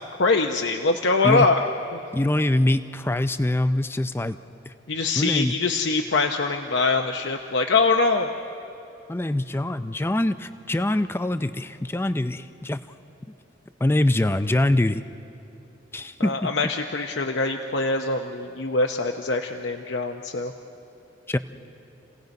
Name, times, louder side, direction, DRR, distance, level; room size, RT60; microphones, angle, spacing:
voice 1, 0.2-1.6 1.9-2.0 4.9-8.3 16.2-20.5, left 3 dB, 65° left, 4 dB, 0.8 m, -23 dB
voice 2, 2.1-4.4 4.7-4.8 5.2-5.6 9.1-12.8 13.8-15.0 15.9-16.5 21.3-21.4, left 1 dB, 10° left, 11 dB, 0.4 m, -24 dB
30.0 x 17.5 x 5.3 m, 2.8 s
head